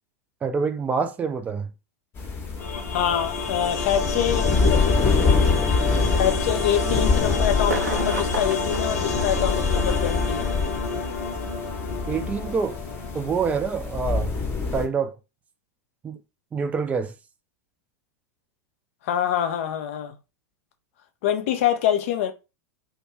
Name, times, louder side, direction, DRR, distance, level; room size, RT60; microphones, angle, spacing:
voice 1, 0.4-1.7 12.1-12.8 13.1-14.4 14.7-15.1 16.0-16.2 16.5-17.1, right 5 dB, 15° right, 0.4 m, -26 dB
sound 1, 2.2-14.9, left 4 dB, 25° left, 0.8 m, -25 dB
sound 2, 2.6-13.6, left 4 dB, 75° left, 0.8 m, -30 dB
voice 2, 2.9-4.9 6.2-10.5 19.0-20.2 21.2-22.3, left 10 dB, 55° left, 0.5 m, -25 dB
sound 3, 7.6-10.7 11.8-11.9, right 3 dB, 75° right, 0.8 m, -32 dB
2.3 x 2.1 x 3.0 m
figure-of-eight pair, 90°, 9 cm